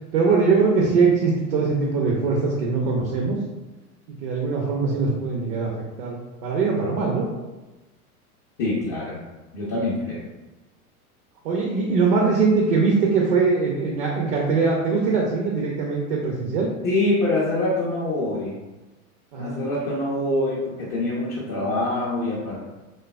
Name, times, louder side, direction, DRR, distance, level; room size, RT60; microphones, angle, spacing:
voice 1, 0.1-3.4 4.2-5.7 6.0-7.2 11.4-16.7 19.3-19.6, right 4 dB, 40° right, -2 dB, 0.5 m, -22 dB
voice 2, 8.6-9.2 9.5-10.2 16.8-18.6 19.4-22.6, left 2 dB, 20° left, -8 dB, 0.3 m, -25 dB
3.2 x 2.2 x 2.2 m, 1.1 s
figure-of-eight pair, 85°, 45 cm